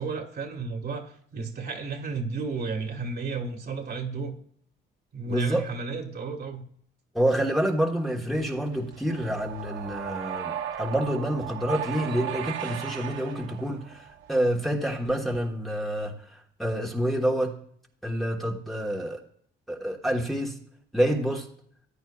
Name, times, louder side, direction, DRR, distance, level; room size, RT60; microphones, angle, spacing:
voice 1, 0.0-4.3 5.1-6.6, right 4 dB, 55° right, 2 dB, 1.6 m, -33 dB
voice 2, 5.3-5.6 7.1-17.5 18.0-19.2 19.7-20.5 20.9-21.5, equal, ahead, -1 dB, 1.3 m, -28 dB
sound 1, 8.3-14.5, right 10 dB, 75° right, 1.0 m, -36 dB
14.5 x 9.1 x 2.4 m, 0.62 s
cardioid pair, 90°, 20 cm